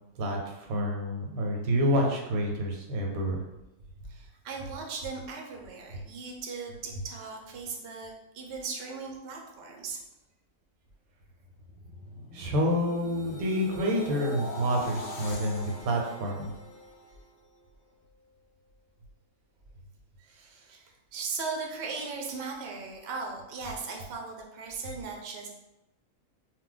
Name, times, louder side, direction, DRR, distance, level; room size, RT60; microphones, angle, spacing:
voice 1, 0.2-3.4 12.3-16.5, equal, 85° right, 0 dB, 1.1 m, -28 dB
voice 2, 4.1-10.0 15.7-15.9 20.2-25.5, right 4 dB, 60° right, 0 dB, 0.7 m, -38 dB
sound 1, 11.3-17.6 18.0-18.3, left 1 dB, 70° left, 0.4 m, -42 dB
2.3 x 2.1 x 3.8 m, 0.96 s
omnidirectional pair, 1.5 m